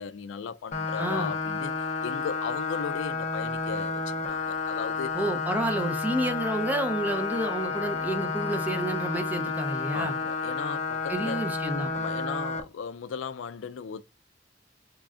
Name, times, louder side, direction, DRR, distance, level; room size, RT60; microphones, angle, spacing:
voice 1, 0.0-1.7 2.0-5.2 9.9-11.5 11.9-14.0, left 6 dB, 85° left, 0.4 m, -36 dB
sound 1, 0.7-12.6, left 4 dB, 40° left, 0.6 m, -31 dB
voice 2, 1.0-1.3 5.1-10.1 11.1-11.9, right 1 dB, 10° right, 0.6 m, -30 dB
3.7 x 3.1 x 2.4 m
head